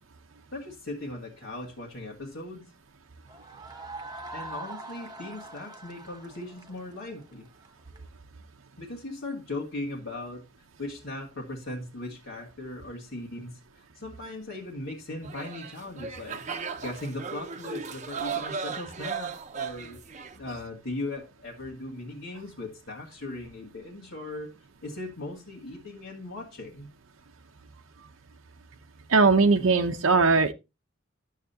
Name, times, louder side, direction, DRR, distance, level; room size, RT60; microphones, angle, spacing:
voice 1, 0.5-2.7 4.3-7.5 8.8-16.4 16.8-20.0 20.3-26.9, left 2 dB, 70° left, 1.8 m, -38 dB
sound 1, 3.3-8.0, right 2 dB, 20° right, 1.1 m, -43 dB
sound 2, 15.2-20.4, right 6 dB, 35° right, 0.8 m, -36 dB
voice 2, 29.1-30.5, right 4 dB, 90° right, 0.8 m, -20 dB
12.0 x 7.4 x 2.8 m
head